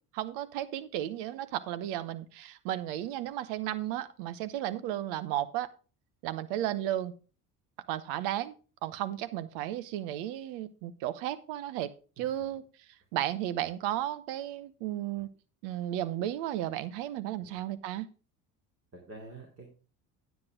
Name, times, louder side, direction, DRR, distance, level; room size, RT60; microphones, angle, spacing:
voice 1, 0.1-5.7 6.2-7.1 7.9-8.5 8.8-11.9 12.2-12.6 13.1-15.3 15.6-18.1, right 12 dB, 65° right, 0.9 m, -34 dB
voice 2, 18.9-19.7, right 3 dB, 30° right, 2.9 m, -48 dB
9.5 x 8.2 x 3.7 m
hypercardioid pair, 65°, 46 cm